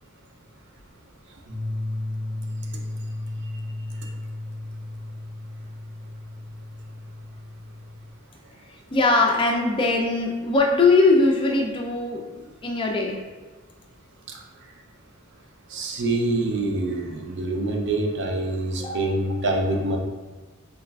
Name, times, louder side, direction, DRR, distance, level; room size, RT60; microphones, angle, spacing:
sound 1, 1.5-8.1, left 1 dB, 90° right, 1.0 m, -34 dB
voice 1, 8.9-13.2 18.8-19.1, left 3 dB, 25° left, 0 dB, 0.4 m, -21 dB
voice 2, 15.7-20.0, right 2 dB, 55° right, 1 dB, 0.5 m, -25 dB
3.9 x 2.3 x 2.3 m, 1.3 s
head